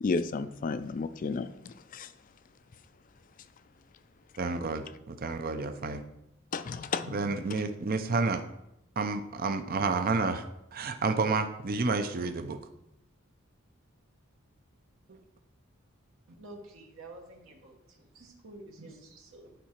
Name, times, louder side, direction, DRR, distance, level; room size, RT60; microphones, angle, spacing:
voice 1, 0.0-2.1 6.5-7.4, left 4 dB, 40° left, 12 dB, 0.4 m, -33 dB
voice 2, 4.4-6.0 7.1-8.4 9.0-10.4 10.7-12.6 15.1-15.2, right 4 dB, 45° right, 7 dB, 0.5 m, -30 dB
voice 3, 16.4-19.5, right 2 dB, 70° right, 0 dB, 1.2 m, -49 dB
10.0 x 4.7 x 4.4 m, 0.85 s
head